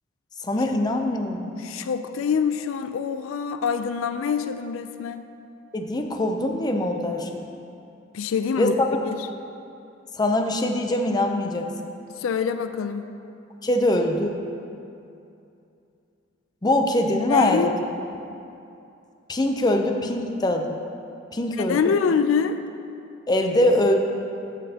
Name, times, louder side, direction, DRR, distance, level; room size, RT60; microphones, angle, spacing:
voice 1, 0.4-1.5 5.7-7.4 8.6-8.9 10.1-11.7 13.6-14.4 16.6-17.7 19.3-20.8 21.3-21.8 23.3-23.9, left 1 dB, 20° left, 4 dB, 0.5 m, -23 dB
voice 2, 1.6-5.2 8.1-8.7 9.0-9.3 12.2-13.1 17.3-17.8 21.5-22.6, left 6 dB, 85° left, 10 dB, 0.4 m, -25 dB
13.0 x 7.4 x 2.8 m, 2.6 s
head